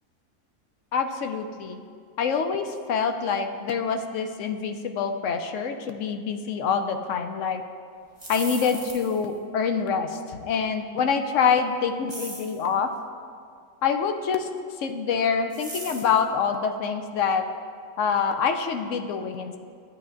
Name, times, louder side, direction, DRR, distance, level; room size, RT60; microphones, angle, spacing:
voice 1, 0.9-1.8 2.2-7.6 8.3-12.9 13.8-14.5 14.8-17.5 18.0-19.6, left 6 dB, 65° left, 6 dB, 0.9 m, -26 dB
sound 1, 8.0-9.3 12.1-12.6 15.5-16.2, right 1 dB, 15° right, 1.5 m, -38 dB
12.5 x 8.6 x 2.5 m, 2.2 s
omnidirectional pair, 1.5 m